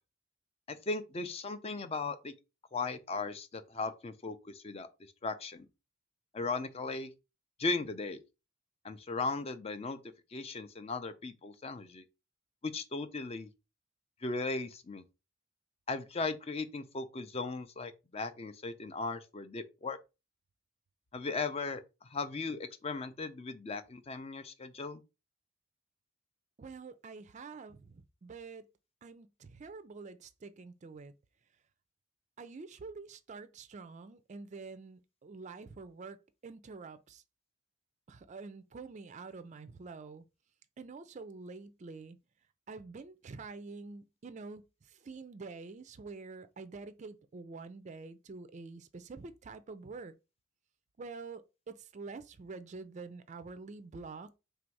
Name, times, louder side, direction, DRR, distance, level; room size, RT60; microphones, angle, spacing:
voice 1, 0.7-2.3 2.7-4.9 5.2-5.7 6.3-7.1 7.6-8.2 8.8-10.0 10.3-12.0 12.6-13.5 14.2-15.0 15.9-20.0 21.1-25.0, left 3 dB, 30° left, 0.5 m, -37 dB
voice 2, 26.6-28.6 29.0-31.1 32.4-36.2 36.4-37.2 38.1-40.2 40.8-42.2 42.7-44.6 45.0-50.1 51.0-54.4, right 4 dB, 35° right, 0.4 m, -47 dB
3.4 x 2.6 x 4.5 m
head